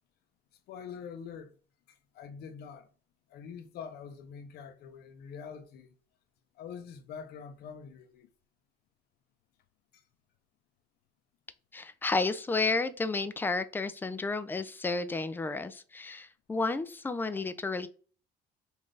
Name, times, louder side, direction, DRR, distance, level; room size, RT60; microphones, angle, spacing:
voice 1, 0.7-1.6 1.9-2.9 3.3-5.9 6.5-8.3 9.9-10.0, left 6 dB, 70° left, 0.6 m, -45 dB
voice 2, 11.7-17.9, left 3 dB, 10° left, 0.3 m, -32 dB
4.1 x 2.5 x 3.2 m
cardioid pair, 110°, 17 cm